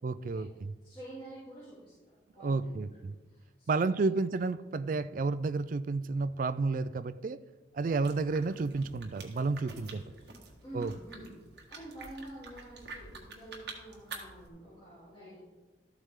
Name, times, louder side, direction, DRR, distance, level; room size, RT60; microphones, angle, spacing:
voice 1, 0.0-0.7 2.4-3.1 3.7-7.4 7.7-10.0 10.7-10.9, right 3 dB, 45° right, 14 dB, 0.3 m, -31 dB
voice 2, 0.8-3.0 3.3-3.9 9.6-9.7 10.0-11.4 11.7-15.4, right 1 dB, 30° left, -12 dB, 3.4 m, -49 dB
sound 1, 7.8-14.5, right 4 dB, 65° right, 1.6 m, -48 dB
13.0 x 8.2 x 3.7 m, 1.3 s
head